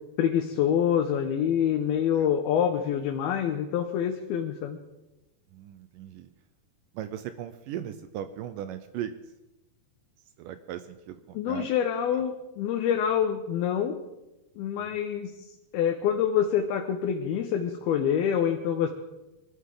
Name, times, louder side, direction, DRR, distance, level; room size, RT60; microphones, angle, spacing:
voice 1, 0.2-4.8 11.3-14.0 14.6-15.5 15.7-18.9, left 9 dB, 85° left, 3 dB, 2.9 m, -26 dB
voice 2, 5.5-6.3 6.9-9.1 10.4-11.7 12.1-12.2 14.8-14.9, right 10 dB, 80° right, 10 dB, 2.1 m, -38 dB
23.0 x 13.0 x 3.8 m, 1.0 s
omnidirectional pair, 4.3 m